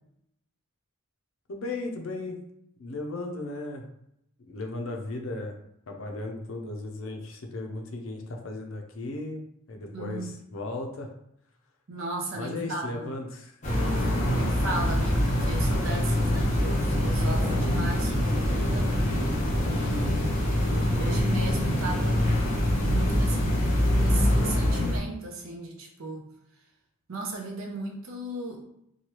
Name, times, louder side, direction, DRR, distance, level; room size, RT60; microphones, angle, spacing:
voice 1, 1.5-2.4 2.8-3.9 4.5-5.6 5.9-9.4 9.7-11.1 12.4-13.6, left 2 dB, 65° left, 3 dB, 0.5 m, -36 dB
voice 2, 9.9-10.3 11.9-13.1 14.0-22.2 22.8-23.6 23.9-26.3 27.1-28.6, right 2 dB, 70° right, 1 dB, 0.6 m, -36 dB
sound 1, 13.6-25.0, left 1 dB, 35° left, 0.7 m, -24 dB
3.1 x 2.2 x 2.9 m, 0.77 s
head